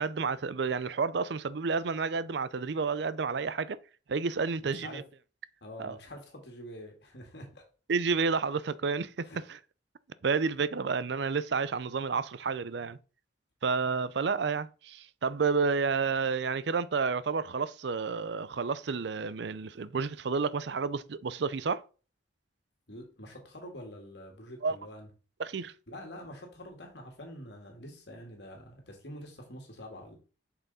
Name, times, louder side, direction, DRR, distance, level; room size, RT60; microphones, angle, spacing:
voice 1, 0.0-3.8 4.1-5.0 5.8-6.0 7.9-9.6 10.2-13.0 13.6-21.8 24.6-24.8 25.4-25.7, right 5 dB, 60° right, 0.5 m, -30 dB
voice 2, 4.7-5.1 5.6-7.6 9.2-9.4 22.9-25.1 25.9-30.2, equal, 60° left, 2.0 m, -46 dB
7.3 x 5.8 x 4.1 m
head